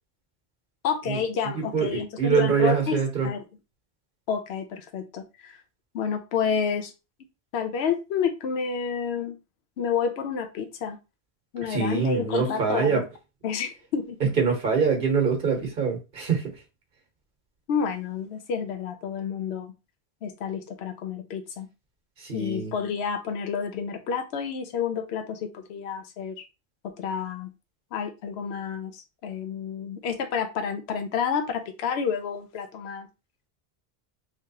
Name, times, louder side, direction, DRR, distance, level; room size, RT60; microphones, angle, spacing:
voice 1, 0.8-3.4 4.3-5.6 5.9-6.9 7.5-9.4 9.8-11.0 11.5-13.0 13.4-14.2 17.7-19.7 20.2-21.7 22.3-26.4 26.8-27.5 27.9-33.1, left 6 dB, 80° left, 0.9 m, -29 dB
voice 2, 1.6-3.3 11.7-13.0 14.2-16.5 22.2-22.7, right 5 dB, 55° right, 1.3 m, -24 dB
3.9 x 3.2 x 2.8 m
omnidirectional pair, 1.1 m